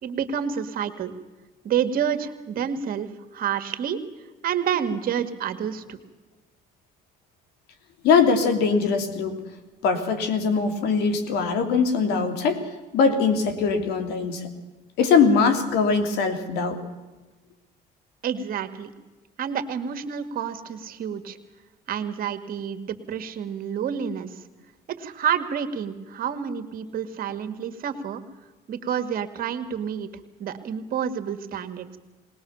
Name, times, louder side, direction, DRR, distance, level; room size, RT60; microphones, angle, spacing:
voice 1, 0.0-1.1 1.6-4.0 4.4-6.0 18.2-18.9 19.4-21.4 21.9-24.3 24.9-28.2 28.7-30.1 30.4-32.0, right 8 dB, 60° right, 8 dB, 1.8 m, -29 dB
voice 2, 8.0-9.3 9.8-12.6 12.9-14.5 15.0-16.8, left 5 dB, 80° left, 7 dB, 2.7 m, -21 dB
20.0 x 20.0 x 7.1 m, 1.2 s
cardioid pair, 90°, 17 cm